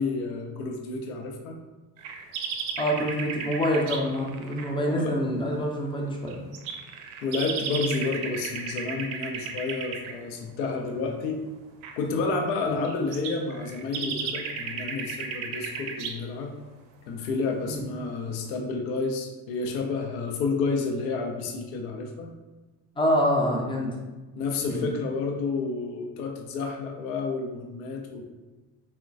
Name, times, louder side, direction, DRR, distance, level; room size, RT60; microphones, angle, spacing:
voice 1, 0.0-1.6 4.9-5.2 7.2-11.4 12.0-16.6 17.1-22.3 24.4-28.2, left 4 dB, 65° left, 2 dB, 0.6 m, -30 dB
sound 1, 2.0-4.7 6.3-10.1 11.8-11.9 12.8-16.2, right 6 dB, 60° right, 0.5 m, -34 dB
voice 2, 2.8-6.4 12.7-12.8 17.6-17.8 23.0-23.9 24.7-24.9, equal, 10° left, -1 dB, 0.5 m, -26 dB
3.6 x 2.1 x 2.4 m, 1.2 s
figure-of-eight pair, 55°, 47 cm